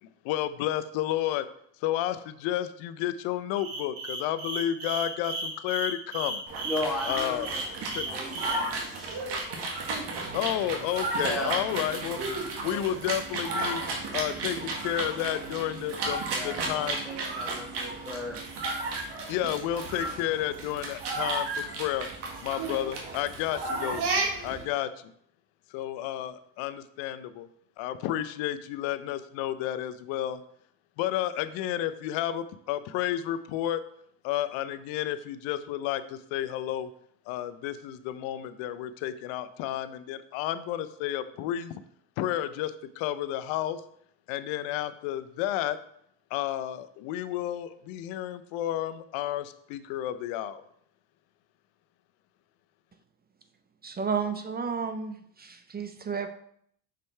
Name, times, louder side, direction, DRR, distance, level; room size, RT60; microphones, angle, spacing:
voice 1, 0.0-1.5 1.8-6.4 7.1-7.5 7.9-8.1 10.3-12.2 12.6-13.8 14.1-17.0 19.3-22.1 22.4-24.0 24.4-25.1 25.7-27.5 27.8-30.4 31.0-33.8 34.2-36.9 37.3-41.7 42.2-43.8 44.3-45.8 46.3-50.6, left 12 dB, 80° left, 13 dB, 0.6 m, -31 dB
sound 1, 3.6-8.6, right 2 dB, 85° right, 1.8 m, -34 dB
sound 2, 6.5-24.6, right 2 dB, 60° right, 1.6 m, -33 dB
voice 2, 6.6-9.2 11.1-11.6 16.3-18.4, left 1 dB, ahead, -3 dB, 1.0 m, -36 dB
voice 3, 53.8-56.3, right 6 dB, 20° right, 8 dB, 0.4 m, -32 dB
5.6 x 5.1 x 3.3 m, 0.68 s
supercardioid pair, 100°, 46 cm